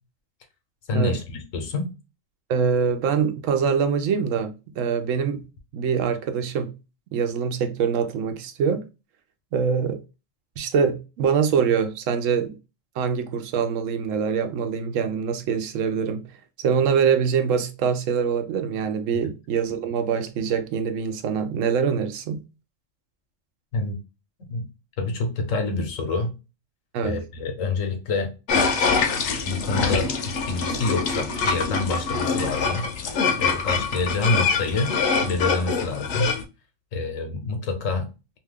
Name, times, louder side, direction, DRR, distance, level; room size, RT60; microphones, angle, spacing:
voice 1, 0.9-1.9 23.7-24.0 24.5-24.7 25.0-26.3 27.0-28.3 29.4-30.1 30.5-32.9 33.4-34.9 35.2-36.3 36.9-38.1, left 3 dB, 85° left, 1.2 m, -27 dB
voice 2, 2.5-5.4 5.7-6.7 7.1-8.8 9.5-10.0 10.6-12.5 13.0-16.2 16.6-22.4 26.9-27.2 32.1-32.2, right 6 dB, 80° right, 0.9 m, -24 dB
sound 1, 28.5-36.4, left 5 dB, 70° left, 0.9 m, -24 dB
2.8 x 2.3 x 3.3 m
omnidirectional pair, 1.3 m